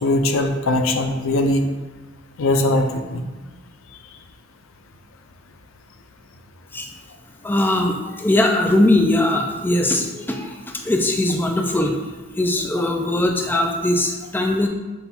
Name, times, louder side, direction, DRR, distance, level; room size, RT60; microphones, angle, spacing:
voice 1, 0.0-1.6 2.4-3.2, left 1 dB, 85° left, 5 dB, 0.5 m, -20 dB
voice 2, 7.4-10.6 10.8-12.0 12.2-14.7, left 1 dB, 10° left, 2 dB, 0.3 m, -20 dB
5.4 x 2.3 x 4.2 m, 1.2 s
head